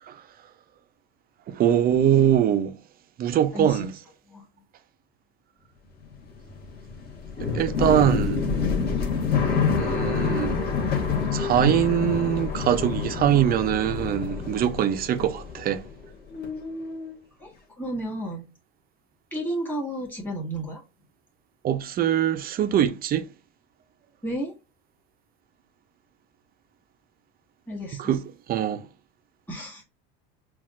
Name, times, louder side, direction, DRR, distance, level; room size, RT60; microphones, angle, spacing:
voice 1, 1.5-2.7 3.2-4.0 7.4-8.6 9.8-10.6 11.3-15.8 21.6-23.3 28.0-28.2 28.5-28.9, right 10 dB, 30° right, 0.4 m, -23 dB
voice 2, 3.5-3.9 4.3-4.4 17.4-18.4 19.3-20.8 24.2-24.5 27.7-28.1 29.5-29.8, right 1 dB, 5° left, 1.6 m, -32 dB
sound 1, 5.9-16.1 16.3-17.2, left 5 dB, 35° left, 1.2 m, -27 dB
5.5 x 2.3 x 2.5 m
supercardioid pair, 120°, 30 cm